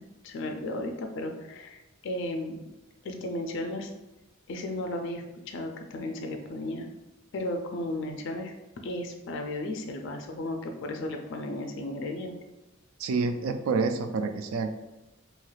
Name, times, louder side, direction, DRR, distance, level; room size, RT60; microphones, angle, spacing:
voice 1, 0.2-2.6 3.0-3.9 4.5-6.9 7.3-8.5 8.8-12.3, left 1 dB, 60° left, 4 dB, 0.4 m, -34 dB
voice 2, 13.0-14.7, right 4 dB, 80° right, 7 dB, 0.3 m, -28 dB
3.1 x 2.8 x 2.3 m, 1.0 s
head